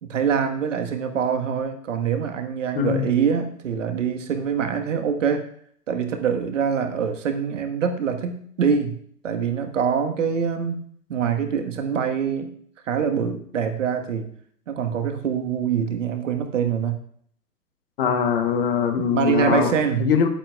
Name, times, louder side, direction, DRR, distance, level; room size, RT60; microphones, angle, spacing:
voice 1, 0.0-5.5 5.9-8.9 9.2-10.8 11.1-12.5 12.8-14.3 14.7-16.9 19.0-20.1, right 7 dB, 50° right, 6 dB, 1.5 m, -24 dB
voice 2, 2.7-3.1 18.0-19.7 20.0-20.3, left 7 dB, 35° left, 7 dB, 1.0 m, -22 dB
17.5 x 8.8 x 2.4 m, 0.62 s
figure-of-eight pair, 135°, 48 cm